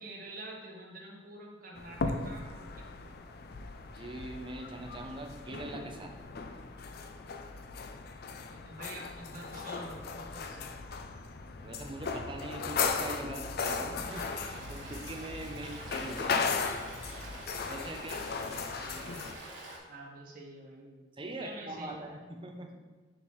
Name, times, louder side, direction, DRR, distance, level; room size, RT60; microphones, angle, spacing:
voice 1, 0.0-2.8 8.5-10.7 18.3-19.1 19.9-21.0 21.4-22.2, right 2 dB, 45° right, -2 dB, 1.1 m, -47 dB
sound 1, 1.8-19.4, left 5 dB, 55° left, 0.4 m, -37 dB
voice 2, 3.9-6.1 11.6-16.5 17.6-18.3 21.2-22.8, right 1 dB, 25° right, 3 dB, 0.6 m, -42 dB
Stream, 14.1-19.8, right 2 dB, 65° right, 1.4 m, -46 dB
6.8 x 5.6 x 3.1 m, 1.4 s
head